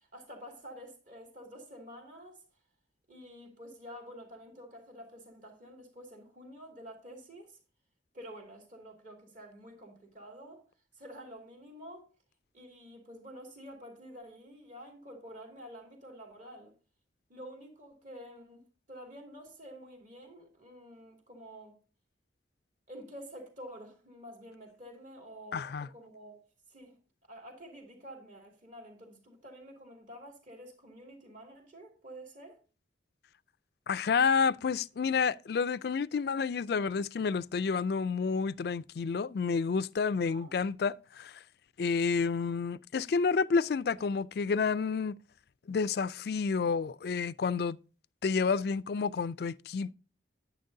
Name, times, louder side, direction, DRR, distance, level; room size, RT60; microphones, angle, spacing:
voice 1, 0.0-2.4 3.1-7.6 8.1-10.7 10.9-12.1 12.5-16.7 17.3-21.8 22.9-27.0 27.3-32.6 40.2-40.5, equal, 45° right, 2.8 m, -49 dB
voice 2, 25.5-25.9 33.9-41.4 41.8-45.2 45.7-47.8 48.2-49.9, left 5 dB, 55° left, 0.3 m, -30 dB
10.5 x 9.6 x 2.7 m
head